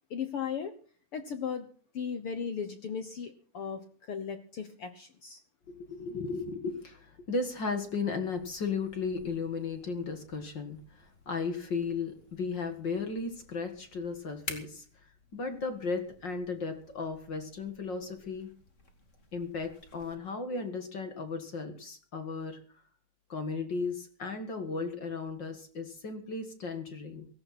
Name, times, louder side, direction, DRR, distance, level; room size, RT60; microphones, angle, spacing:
voice 1, 0.1-0.7 1.1-1.7 1.9-5.4, left 7 dB, 75° left, 8 dB, 1.3 m, -36 dB
voice 2, 5.7-14.9 15.3-18.5 19.3-22.6 23.3-27.3, left 4 dB, 40° left, 7 dB, 1.8 m, -35 dB
sound 1, 8.3-20.1, left 3 dB, 25° left, 2.0 m, -52 dB
17.0 x 16.5 x 4.3 m, 0.43 s
omnidirectional pair, 4.2 m